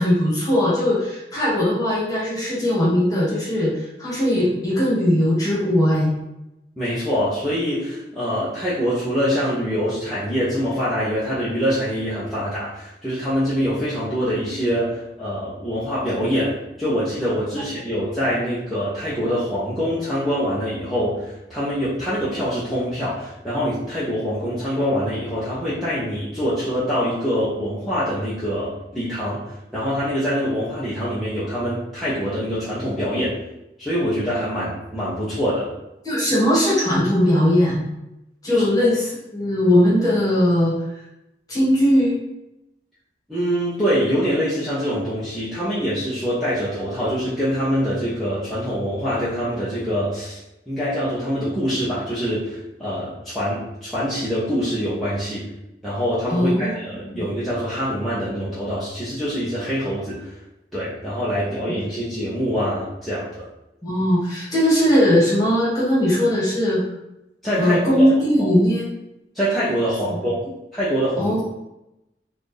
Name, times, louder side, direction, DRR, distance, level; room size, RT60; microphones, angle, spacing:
voice 1, 0.0-6.1 36.0-37.8 38.4-40.7 41.5-42.2 56.3-56.7 57.1-57.2 63.8-66.8 67.6-68.8 71.2-71.4, equal, 20° left, -7 dB, 1.4 m, -19 dB
voice 2, 6.8-29.4 29.7-33.4 33.8-35.7 38.5-38.6 43.3-50.4 50.7-55.5 55.8-60.3 60.7-63.3 67.4-68.1 68.4-68.5 69.3-70.4 70.7-71.4, equal, ahead, -12 dB, 0.8 m, -24 dB
4.0 x 2.6 x 3.3 m, 0.90 s
head